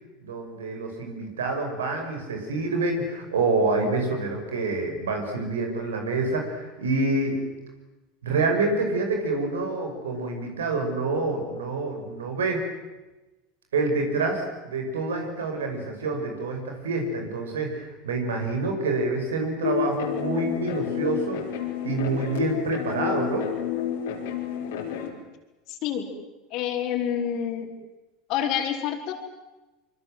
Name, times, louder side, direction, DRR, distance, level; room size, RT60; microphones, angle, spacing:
voice 1, 0.2-7.4 8.2-12.6 13.7-21.4 21.8-23.5, right 3 dB, 90° right, 4 dB, 5.9 m, -27 dB
sound 1, 19.6-25.1, left 9 dB, 80° left, 5.0 m, -29 dB
voice 2, 25.7-26.1 26.5-27.7 28.3-29.1, left 9 dB, 60° left, 4 dB, 4.5 m, -27 dB
25.0 x 24.5 x 7.8 m, 1.1 s
hypercardioid pair, 90°, 0 cm